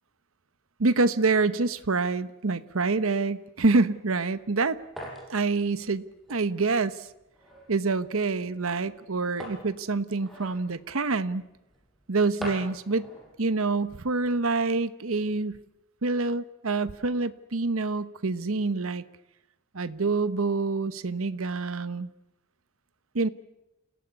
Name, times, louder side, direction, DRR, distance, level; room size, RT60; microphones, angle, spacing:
voice 1, 0.8-4.8 5.3-6.0 6.3-7.1 7.7-11.4 12.1-13.1 13.4-15.6 16.0-19.0 19.7-22.1 23.1-23.3, right 3 dB, 85° right, 13 dB, 1.0 m, -26 dB
sound 1, 4.4-14.5, equal, ahead, 6.2 m, -46 dB
28.0 x 17.0 x 9.7 m, 0.93 s
head